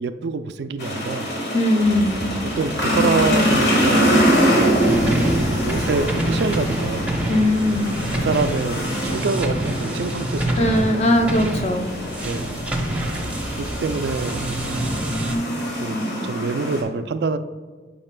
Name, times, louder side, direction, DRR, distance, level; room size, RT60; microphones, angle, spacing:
voice 1, 0.0-1.3 2.6-4.2 5.6-7.2 8.2-11.0 12.2-12.6 13.5-14.5 15.8-17.4, right 4 dB, 60° right, 10 dB, 0.3 m, -26 dB
sound 1, 0.8-16.8, equal, 65° left, 1.5 m, -24 dB
voice 2, 1.5-2.1 7.3-7.9 10.6-11.9, left 1 dB, 35° left, 4 dB, 0.6 m, -19 dB
sound 2, 1.8-7.7, equal, 80° left, 1.9 m, -35 dB
sound 3, 4.8-15.4, right 1 dB, 5° right, 0.7 m, -27 dB
10.5 x 4.8 x 2.2 m, 1.5 s
head